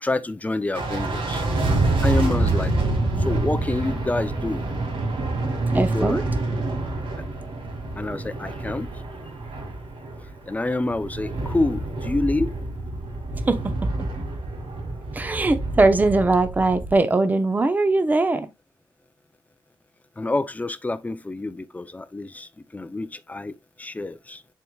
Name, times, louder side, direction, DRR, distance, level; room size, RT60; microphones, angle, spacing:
voice 1, 0.0-1.4 2.0-2.7 3.2-4.6 5.7-6.2 8.0-8.9 10.5-12.5 20.2-24.4, left 2 dB, 15° left, 0.5 m, -27 dB
sound 1, 0.7-17.0, right 2 dB, 80° right, 2.3 m, -27 dB
voice 2, 5.7-6.2 13.3-13.7 15.1-18.5, right 2 dB, 20° right, 0.7 m, -20 dB
10.5 x 4.7 x 2.3 m
wide cardioid pair, 125°, 9 cm